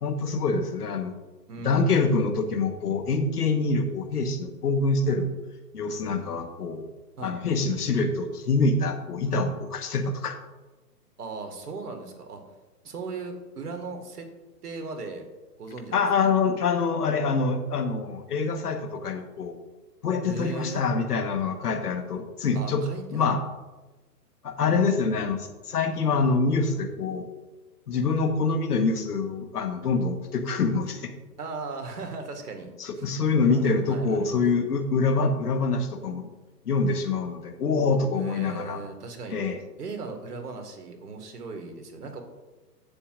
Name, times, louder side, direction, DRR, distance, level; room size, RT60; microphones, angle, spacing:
voice 1, 0.0-1.1 1.6-5.3 5.7-6.9 7.2-10.4 15.9-19.5 20.0-22.8 23.1-23.4 24.4-27.2 27.9-31.1 32.8-36.3 36.6-38.8 39.3-39.6, left 4 dB, 70° left, 6 dB, 1.5 m, -25 dB
voice 2, 1.5-2.2 7.2-7.4 11.2-12.4 12.8-14.3 14.6-15.2 15.6-16.3 20.2-20.8 22.5-23.2 31.4-32.7 33.0-33.1 33.5-34.7 38.1-39.4 39.8-42.2, right 4 dB, 70° right, 4 dB, 2.1 m, -37 dB
15.5 x 7.1 x 2.6 m, 1.2 s
figure-of-eight pair, 130°, 48 cm